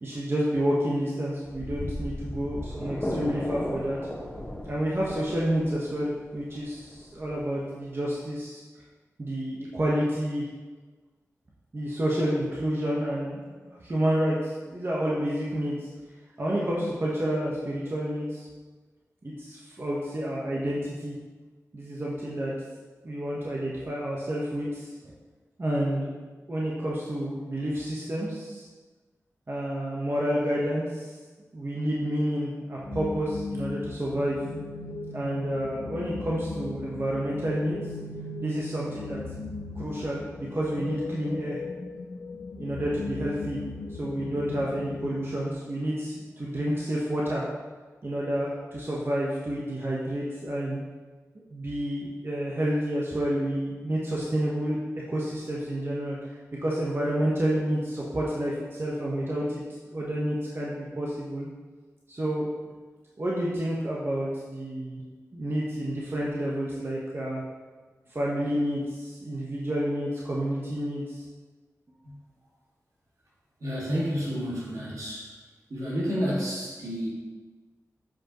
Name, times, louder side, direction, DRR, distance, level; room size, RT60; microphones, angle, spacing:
voice 1, 0.0-4.0 4.6-8.6 9.2-10.4 11.7-15.9 16.4-18.4 19.2-21.2 21.7-22.5 23.0-24.9 25.6-26.2 26.5-28.7 29.5-31.1 31.5-34.4 35.1-37.8 38.4-39.2 39.7-41.6 42.5-43.6 44.0-47.4 48.0-50.8 51.5-54.8 55.1-56.3 56.6-61.5 62.1-62.5 63.2-65.0 65.3-67.4 68.1-71.2, equal, 45° right, -5 dB, 1.1 m, -29 dB
sound 1, 1.4-8.2, left 1 dB, 15° left, 1.1 m, -36 dB
sound 2, 32.8-45.5, left 3 dB, 75° left, 0.4 m, -37 dB
voice 2, 73.6-75.3 75.7-77.1, equal, 75° right, -6 dB, 2.1 m, -30 dB
7.3 x 5.0 x 3.0 m, 1.3 s
cardioid pair, 55°, 6 cm